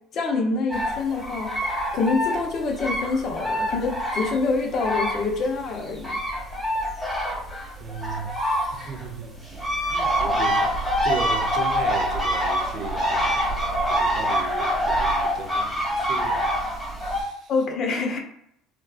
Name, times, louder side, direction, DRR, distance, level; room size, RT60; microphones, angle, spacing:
voice 1, 0.1-6.2 17.5-18.2, left 4 dB, 45° left, 0.7 m, -26 dB
sound 1, 0.7-5.5 5.7-17.2, equal, 5° left, 1.2 m, -25 dB
voice 2, 7.8-17.5, right 5 dB, 45° right, 0.5 m, -37 dB
3.4 x 2.3 x 2.4 m
cardioid pair, 135°, 0 cm